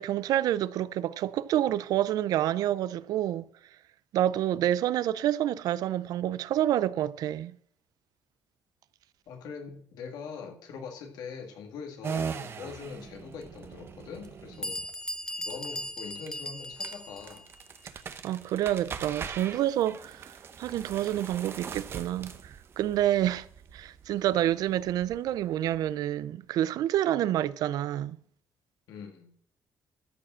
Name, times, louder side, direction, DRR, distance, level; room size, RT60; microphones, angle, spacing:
voice 1, 0.0-3.4 4.1-7.5 18.2-23.5 23.7-28.2, right 12 dB, 75° right, 0.5 m, -28 dB
voice 2, 9.3-14.8 15.4-17.5 28.9-29.3, left 5 dB, 90° left, 1.9 m, -42 dB
sound 1, 12.0-26.3, right 6 dB, 40° right, 0.9 m, -41 dB
Bell, 14.2-14.3 14.6-17.4, left 1 dB, 10° left, 0.6 m, -37 dB
13.5 x 5.0 x 7.4 m
cardioid pair, 155°, 7 cm